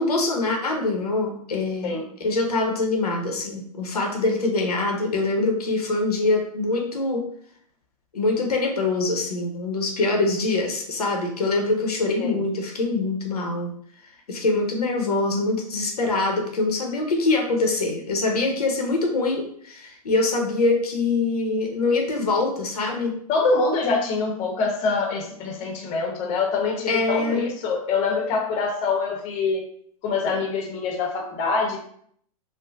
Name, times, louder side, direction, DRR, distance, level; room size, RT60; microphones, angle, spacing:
voice 1, 0.0-7.2 8.1-13.7 14.3-23.2 26.9-27.5, left 3 dB, 85° left, 1 dB, 0.7 m, -24 dB
voice 2, 23.3-29.7 30.0-31.8, left 4 dB, 40° left, 1 dB, 0.7 m, -25 dB
3.1 x 2.0 x 2.3 m, 0.63 s
hypercardioid pair, 115°, 19 cm